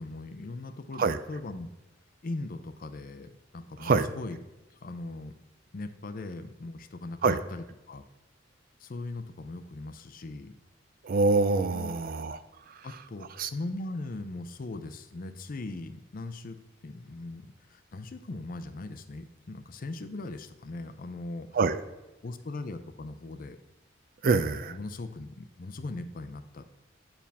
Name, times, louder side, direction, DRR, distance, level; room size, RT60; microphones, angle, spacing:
voice 1, 0.0-1.7 2.2-4.4 4.8-5.3 5.7-8.0 8.8-10.5 11.7-11.9 12.8-21.5 22.2-23.6 24.7-26.8, left 2 dB, 45° left, 9 dB, 0.5 m, -39 dB
voice 2, 11.0-12.4 13.4-13.5 21.5-21.8 24.2-24.8, right 4 dB, 50° right, 12 dB, 0.4 m, -25 dB
8.7 x 4.6 x 3.5 m, 1.0 s
head